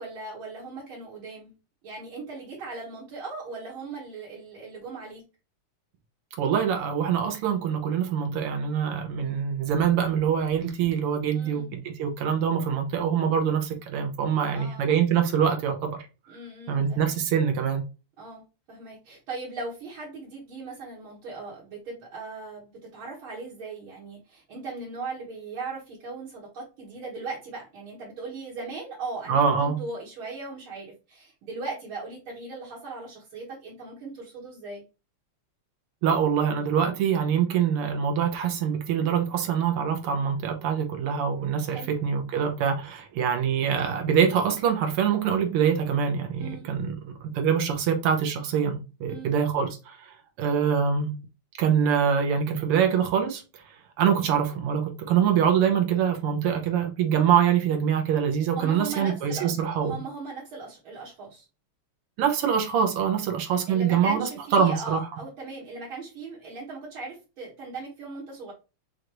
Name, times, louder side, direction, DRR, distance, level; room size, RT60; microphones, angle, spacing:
voice 1, 0.0-1.5 1.8-5.2 11.3-11.7 14.5-14.9 16.3-17.2 18.2-34.8 41.7-41.9 46.4-46.7 49.1-49.3 58.5-61.5 63.1-63.2 63.7-68.5, right 3 dB, 70° right, 2.2 m, -38 dB
voice 2, 6.4-16.0 16.7-17.8 29.3-29.8 36.0-51.1 51.6-53.6 54.0-59.9 62.2-64.3 64.5-65.1, right 7 dB, 90° right, 1.9 m, -24 dB
6.3 x 2.6 x 3.0 m
omnidirectional pair, 2.4 m